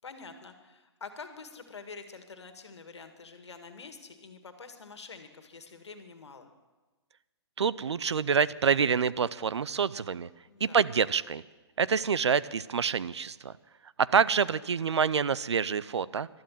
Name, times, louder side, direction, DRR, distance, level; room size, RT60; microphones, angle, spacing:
voice 1, 0.0-6.5 10.5-10.8, left 4 dB, 80° left, 8 dB, 1.9 m, -47 dB
voice 2, 7.6-10.3 10.6-11.4 11.8-13.5 14.0-16.3, right 6 dB, 80° right, 18 dB, 0.6 m, -27 dB
12.5 x 12.0 x 7.6 m, 1.2 s
hypercardioid pair, 135°, 14 cm